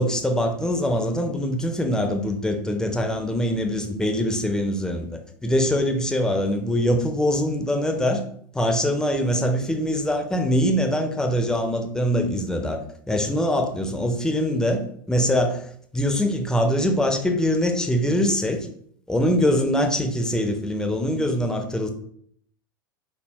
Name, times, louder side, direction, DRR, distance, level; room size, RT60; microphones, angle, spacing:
voice 1, 0.0-8.2 8.5-12.8 13.1-15.7 15.9-18.7 19.1-21.9, equal, 5° left, 4 dB, 0.7 m, -23 dB
5.6 x 2.1 x 4.2 m, 0.64 s
figure-of-eight pair, 80°, 11 cm